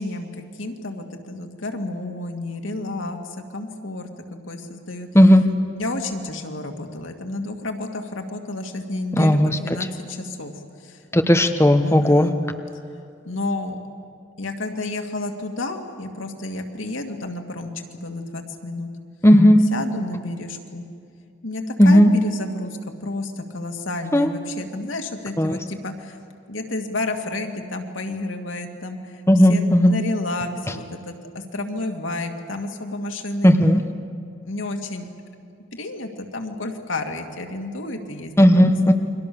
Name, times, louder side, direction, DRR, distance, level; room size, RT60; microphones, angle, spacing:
voice 1, 0.0-5.1 5.7-10.5 10.8-11.0 11.8-12.4 13.2-13.8 14.4-18.9 19.7-20.9 21.4-26.2 26.5-29.2 29.5-33.5 34.4-35.1 35.7-38.9, left 2 dB, 90° left, 4 dB, 2.3 m, -31 dB
voice 2, 9.2-9.6 11.1-12.3 19.2-19.6 21.8-22.1 24.1-24.3 25.4-25.6 29.3-29.9 33.4-33.8 38.4-38.9, equal, 15° left, 6 dB, 1.0 m, -14 dB
29.5 x 23.5 x 7.0 m, 2.3 s
head